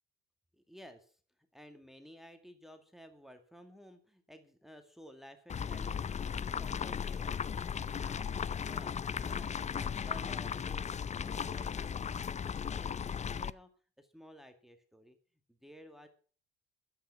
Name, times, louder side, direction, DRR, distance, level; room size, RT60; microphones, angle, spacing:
voice 1, 0.6-1.2 1.5-8.4 8.7-13.7 14.0-15.2 15.5-16.1, equal, ahead, 7 dB, 2.0 m, -55 dB
sound 1, 5.5-13.5, left 7 dB, 20° left, 0.5 m, -36 dB
11.5 x 10.5 x 5.8 m, 0.42 s
hypercardioid pair, 50°, 32 cm